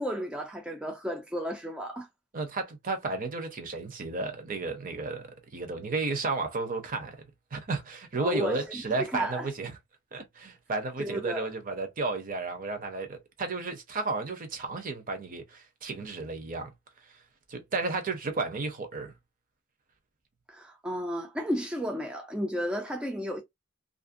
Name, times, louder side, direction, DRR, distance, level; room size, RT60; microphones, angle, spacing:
voice 1, 0.0-2.1 8.2-9.5 11.0-11.5 20.5-23.4, equal, 5° right, 0.4 m, -33 dB
voice 2, 2.3-7.2 7.5-9.7 10.1-16.7 17.5-19.1, right 3 dB, 45° right, 0.7 m, -33 dB
2.5 x 2.1 x 2.5 m
head